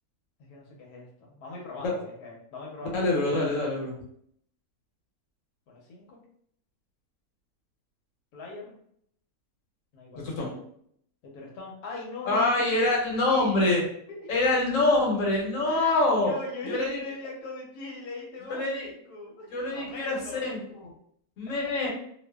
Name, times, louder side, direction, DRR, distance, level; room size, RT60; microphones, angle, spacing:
voice 1, 0.4-3.2 5.7-6.2 8.3-8.8 9.9-10.6 11.2-13.6 14.1-14.3 15.6-20.4, left 3 dB, 85° left, -2 dB, 1.2 m, -41 dB
voice 2, 2.8-4.0 10.1-10.5 12.3-13.8 14.3-16.3 16.7-17.0 18.5-18.9 19.5-20.9 21.4-21.9, left 2 dB, 65° left, -2 dB, 1.1 m, -25 dB
2.5 x 2.4 x 2.2 m, 0.66 s
omnidirectional pair, 1.6 m